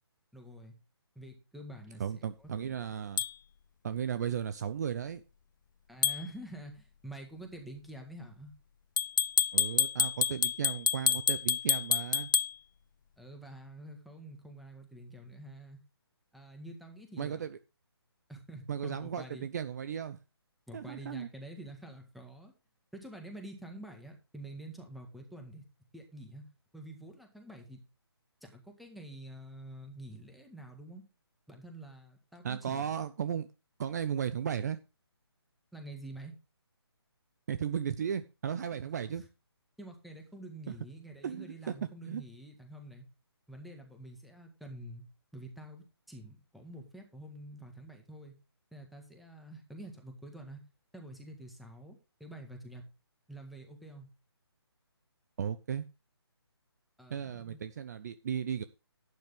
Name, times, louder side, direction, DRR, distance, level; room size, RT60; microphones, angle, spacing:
voice 1, 0.3-0.7 1.2-2.9 5.9-8.5 13.2-15.8 16.3-17.4 18.3-19.5 20.7-22.5 22.9-25.6 25.9-26.5 26.7-27.8 28.4-31.0 31.5-32.9 35.7-36.3 39.2-39.3 39.8-43.0 43.5-45.0 45.3-48.3 48.7-50.6 50.9-52.8 53.3-54.1 57.0-57.6, right 1 dB, ahead, 3 dB, 1.8 m, -47 dB
voice 2, 2.0-3.2 3.8-5.2 9.5-12.3 17.2-17.6 18.7-20.2 20.7-21.3 32.4-33.5 33.8-34.8 37.5-39.2 41.2-41.7 42.0-42.2 55.4-55.8 57.1-58.6, right 8 dB, 40° right, 13 dB, 0.7 m, -35 dB
sound 1, 3.2-3.3 6.0-6.2 9.0-12.5, left 8 dB, 45° left, 0.5 m, -28 dB
11.5 x 9.5 x 3.5 m, 0.29 s
figure-of-eight pair, 155°, 14 cm